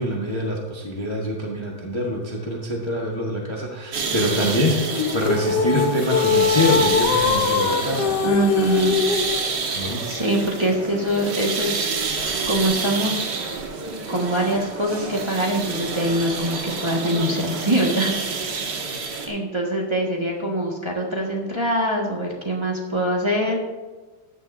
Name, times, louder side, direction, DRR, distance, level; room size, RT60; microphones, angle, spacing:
voice 1, 0.0-8.2 9.7-10.1, left 1 dB, 20° left, -2 dB, 1.1 m, -25 dB
sound 1, 3.9-19.3, right 4 dB, 70° right, 1.9 m, -28 dB
sound 2, 4.9-9.4, left 6 dB, 70° left, 1.4 m, -21 dB
voice 2, 8.2-8.9 9.7-13.5 14.1-18.5 19.2-23.6, right 1 dB, 15° right, -3 dB, 1.5 m, -24 dB
14.5 x 10.0 x 2.6 m, 1.3 s
omnidirectional pair, 2.0 m